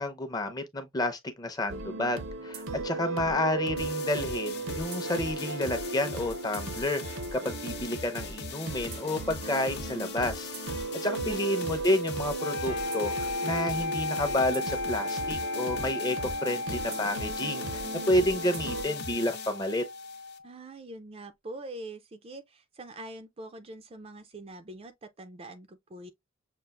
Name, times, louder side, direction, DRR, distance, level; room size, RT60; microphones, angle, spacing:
voice 1, 0.0-17.8 18.1-19.8, left 1 dB, 20° left, 0.6 m, -30 dB
sound 1, 1.7-18.8, right 3 dB, 65° right, 0.7 m, -37 dB
voice 2, 2.7-3.5 11.0-11.5 20.4-26.1, right 2 dB, 25° right, 0.4 m, -44 dB
sound 2, 3.8-20.4, left 5 dB, 50° left, 0.7 m, -42 dB
sound 3, 12.4-20.5, left 2 dB, 85° left, 0.8 m, -35 dB
6.6 x 2.5 x 2.3 m
head